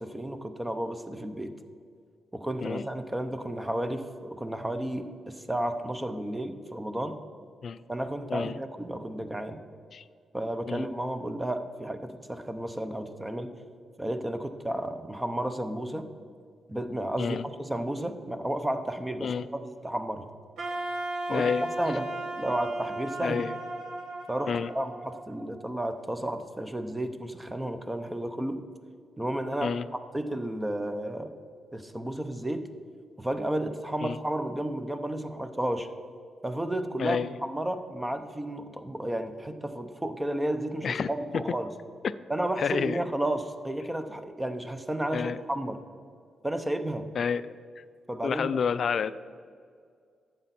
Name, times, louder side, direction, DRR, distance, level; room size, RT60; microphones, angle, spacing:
voice 1, 0.0-1.5 2.3-7.2 7.9-9.6 10.3-13.5 14.0-16.1 16.7-20.3 21.3-23.4 24.3-28.6 29.2-31.4 31.7-32.7 33.2-35.9 36.4-41.7 42.3-45.8 46.4-47.1 48.1-48.6, right 1 dB, 10° right, 8 dB, 0.7 m, -32 dB
Wind instrument woodwind instrument, 20.6-25.6, right 2 dB, 85° right, 1.5 m, -36 dB
voice 2, 21.3-21.7 23.2-23.5 24.5-24.7 29.6-29.8 34.0-34.2 37.0-37.3 40.8-41.1 42.0-42.1 42.6-43.0 45.1-45.4 47.2-47.8 48.2-49.1, left 6 dB, 60° left, 15 dB, 0.3 m, -29 dB
11.5 x 8.1 x 4.2 m, 2.1 s
cardioid pair, 95°, 0 cm